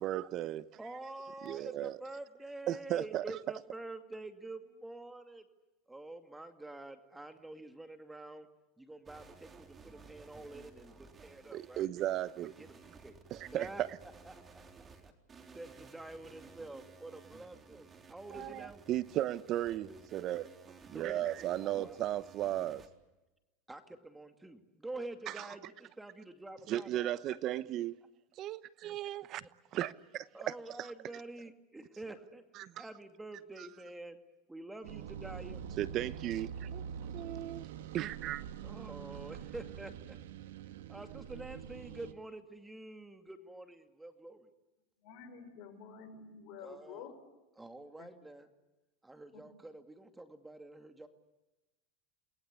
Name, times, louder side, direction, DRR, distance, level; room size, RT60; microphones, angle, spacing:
voice 1, 0.0-0.7 1.4-2.0 2.7-3.2 11.5-12.5 13.3-14.0 18.3-20.5 20.9-22.8 25.3-25.5 26.7-28.0 28.4-29.5 29.7-30.9 32.5-32.8 33.6-33.7 35.8-36.8 37.1-37.7 37.9-38.4, right 13 dB, 45° right, 0.9 m, -36 dB
voice 2, 0.8-5.4 5.9-8.5 8.8-11.9 12.6-13.2 13.5-13.8 14.2-14.9 15.5-18.8 19.9-20.0 20.9-21.3 21.6-22.0 23.7-27.1 29.4-29.5 30.3-32.4 32.8-34.2 34.5-35.6 38.6-40.2 40.9-44.5 46.6-47.1 47.6-48.5 49.0-51.1, right 2 dB, 10° right, 2.4 m, -47 dB
sound 1, 9.1-22.9, right 4 dB, 25° right, 3.9 m, -56 dB
sound 2, 34.8-42.1, right 8 dB, 80° right, 1.7 m, -45 dB
voice 3, 45.0-47.1 48.0-48.1 49.3-49.4, left 7 dB, 60° left, 6.3 m, -49 dB
29.0 x 21.0 x 8.5 m
hypercardioid pair, 105°, 0 cm